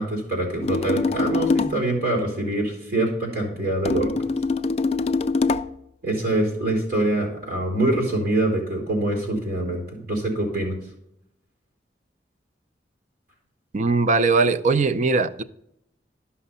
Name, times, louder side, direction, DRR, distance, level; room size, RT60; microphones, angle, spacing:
voice 1, 0.0-4.1 6.0-10.8, right 1 dB, 60° right, 3.5 m, -24 dB
sound 1, 0.6-1.8 3.8-5.8, left 3 dB, 35° left, 0.3 m, -23 dB
voice 2, 13.7-15.4, right 3 dB, 45° right, 0.5 m, -20 dB
11.5 x 5.7 x 5.5 m
head